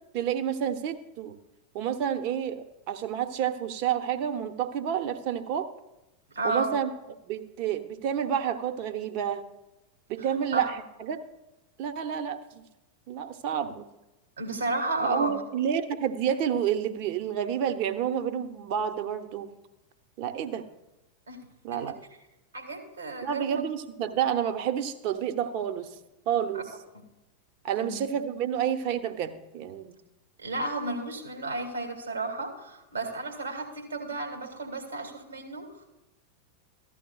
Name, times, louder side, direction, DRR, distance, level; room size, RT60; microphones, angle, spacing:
voice 1, 0.1-1.3 1.7-5.7 6.4-6.9 7.2-9.4 10.1-11.2 11.8-12.6 13.1-13.9 15.0-19.5 20.2-20.7 21.6-22.0 23.2-25.9 26.3-26.6 27.6-29.9, right 9 dB, 45° right, 8 dB, 0.8 m, -29 dB
voice 2, 6.3-6.8 10.2-10.3 10.5-10.7 14.4-15.3 21.3-21.4 22.5-23.6 26.5-26.6 27.8-28.0 30.4-35.9, right 2 dB, 75° right, 2 dB, 2.1 m, -32 dB
15.0 x 11.5 x 2.3 m, 0.94 s
figure-of-eight pair, 90°, 0 cm